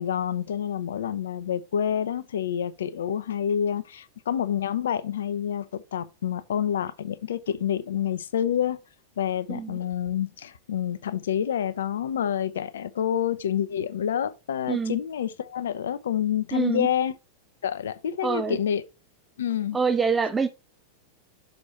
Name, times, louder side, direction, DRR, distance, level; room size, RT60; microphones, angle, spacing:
voice 1, 0.0-8.8 9.2-17.1 17.6-18.8 19.4-19.8, left 9 dB, 65° left, 0.6 m, -28 dB
voice 2, 14.7-15.0 16.5-16.9 18.2-18.6 19.7-20.5, right 5 dB, 15° right, 0.6 m, -25 dB
6.5 x 5.2 x 4.3 m
figure-of-eight pair, 90°, 0 cm